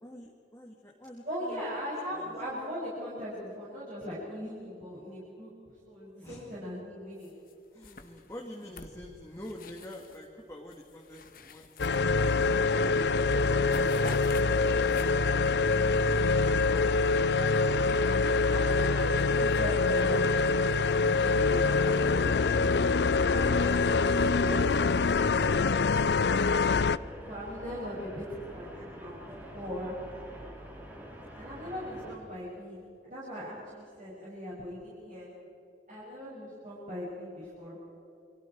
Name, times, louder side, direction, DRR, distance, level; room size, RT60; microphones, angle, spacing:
voice 1, 0.0-1.6 2.1-2.4 6.2-6.5 7.7-13.0 16.7-17.6, left 1 dB, 15° left, -1 dB, 2.1 m, -48 dB
voice 2, 1.3-5.5 5.9-7.3 11.1-11.2 18.5-20.2 20.7-22.8 23.3-23.9 24.2-24.6 27.2-29.2 29.5-30.0 31.4-35.3 35.9-37.8, equal, 45° right, -8 dB, 7.0 m, -40 dB
sound 1, 7.2-7.5 7.8-10.3 10.7-12.6 12.9-13.2 13.4-15.4, left 3 dB, 50° left, 1.5 m, -46 dB
sound 2, 11.8-27.0, left 4 dB, 70° left, 0.5 m, -25 dB
sound 3, 12.5-32.2, equal, 10° right, 3.8 m, -45 dB
29.5 x 24.0 x 4.7 m, 2.7 s
head